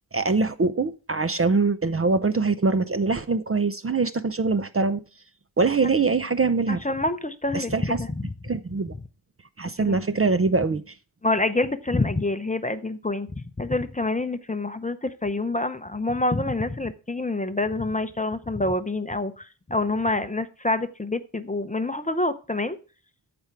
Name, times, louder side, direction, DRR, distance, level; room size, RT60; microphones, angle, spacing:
voice 1, 0.1-5.0 5.6-6.8 7.5-8.0 8.4-8.9 9.6-10.9, right 3 dB, 30° right, 0.6 m, -23 dB
voice 2, 6.7-8.3 9.8-10.0 11.2-22.8, left 2 dB, 15° left, 0.6 m, -27 dB
14.0 x 5.2 x 4.6 m
wide cardioid pair, 80°, 45 cm